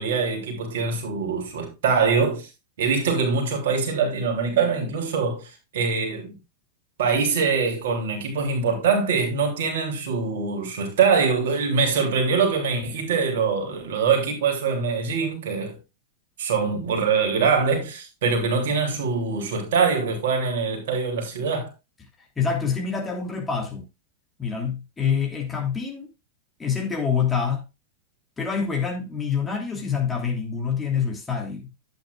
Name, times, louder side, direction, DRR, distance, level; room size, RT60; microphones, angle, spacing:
voice 1, 0.0-2.5 2.8-6.4 7.0-15.8 16.4-21.7, right 5 dB, 55° right, 3.1 m, -23 dB
voice 2, 22.4-23.8 24.4-26.1 26.6-27.6 28.4-31.7, left 6 dB, 15° left, 3.0 m, -26 dB
11.5 x 8.7 x 2.4 m
figure-of-eight pair, 90°, 0 cm